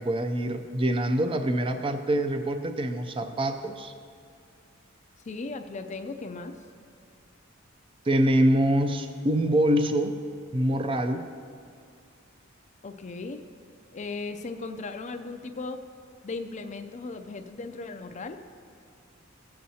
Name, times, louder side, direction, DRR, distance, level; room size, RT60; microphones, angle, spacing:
voice 1, 0.0-3.9 8.1-10.2 10.5-11.2, right 1 dB, 25° right, 8 dB, 0.4 m, -25 dB
voice 2, 5.3-6.5 12.8-13.4 13.9-15.8 16.2-18.4, left 3 dB, 35° left, 7 dB, 0.4 m, -37 dB
17.0 x 7.6 x 2.8 m, 2.3 s
head